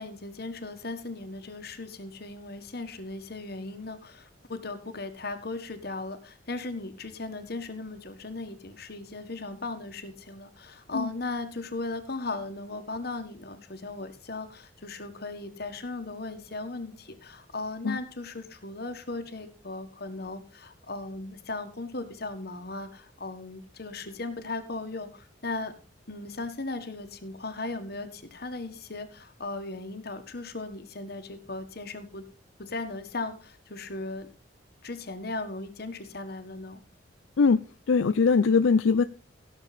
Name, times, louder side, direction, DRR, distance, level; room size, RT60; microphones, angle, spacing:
voice 1, 0.0-25.7 26.1-32.2 32.6-34.3 34.8-36.8, left 3 dB, 55° left, 8 dB, 1.6 m, -37 dB
voice 2, 37.9-39.0, left 5 dB, 85° left, 11 dB, 0.5 m, -21 dB
16.5 x 7.1 x 4.2 m, 0.34 s
head